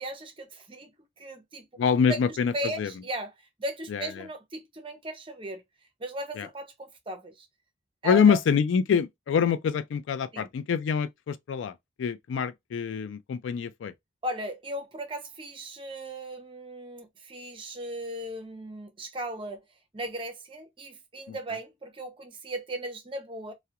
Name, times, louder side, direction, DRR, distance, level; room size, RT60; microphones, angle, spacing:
voice 1, 0.0-1.7 2.1-2.2 2.5-3.3 3.6-5.6 6.0-7.5 8.0-8.4 10.3-10.5 14.2-19.6 19.9-23.5, right 1 dB, 25° right, 0.5 m, -37 dB
voice 2, 1.8-2.9 3.9-4.3 6.4-6.5 8.0-13.9 21.3-21.4, left 6 dB, 80° left, 0.3 m, -25 dB
2.3 x 2.1 x 2.8 m
head